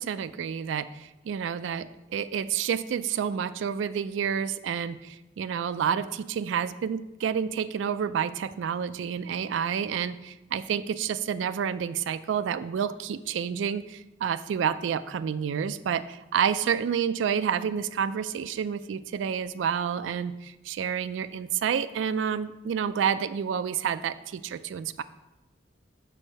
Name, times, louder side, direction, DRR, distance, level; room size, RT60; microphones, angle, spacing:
voice 1, 0.0-25.0, right 7 dB, 80° right, 13 dB, 0.3 m, -29 dB
6.4 x 4.2 x 6.4 m, 1.0 s
head